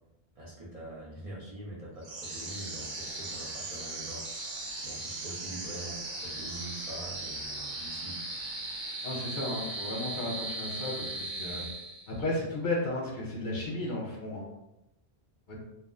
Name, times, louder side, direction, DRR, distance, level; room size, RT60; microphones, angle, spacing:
voice 1, 0.3-4.5 4.8-8.2, right 1 dB, 40° right, -7 dB, 0.6 m, -44 dB
sound 1, 2.0-12.3, right 2 dB, 85° right, 1.0 m, -38 dB
voice 2, 9.0-11.6 12.1-14.4 15.5-15.6, left 2 dB, 55° left, -3 dB, 0.7 m, -34 dB
2.3 x 2.1 x 3.6 m, 0.90 s
omnidirectional pair, 1.1 m